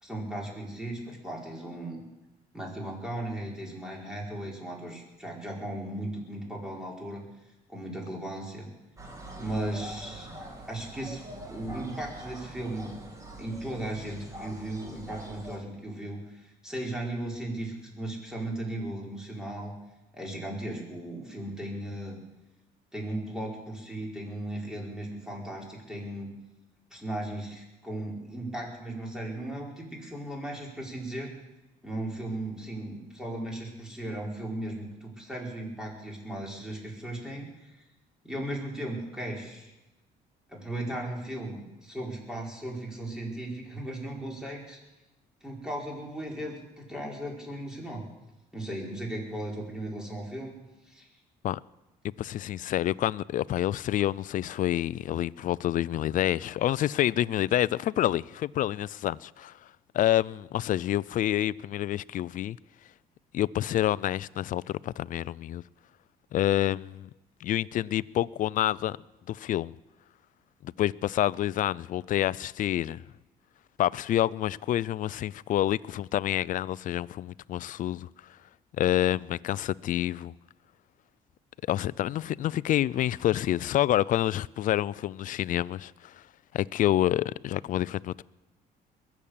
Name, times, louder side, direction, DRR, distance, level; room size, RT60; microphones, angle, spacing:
voice 1, 0.0-2.0 2.5-7.2 7.7-8.7 9.4-10.3 10.7-13.0 13.4-19.7 20.1-22.2 22.9-26.3 26.9-31.3 31.8-37.7 38.2-39.7 40.5-44.8 45.4-48.0 48.5-50.5 50.9-51.1, right 1 dB, 5° right, 4.7 m, -36 dB
sound 1, 9.0-15.6, right 1 dB, 20° right, 3.0 m, -44 dB
voice 2, 52.2-59.5 59.9-62.6 63.3-65.6 66.3-67.1 67.4-69.0 69.3-69.7 70.6-73.0 73.8-78.1 78.8-80.3 81.7-86.2 86.5-88.2, left 13 dB, 50° left, 0.4 m, -28 dB
21.5 x 7.3 x 8.5 m
cardioid pair, 110°, 17 cm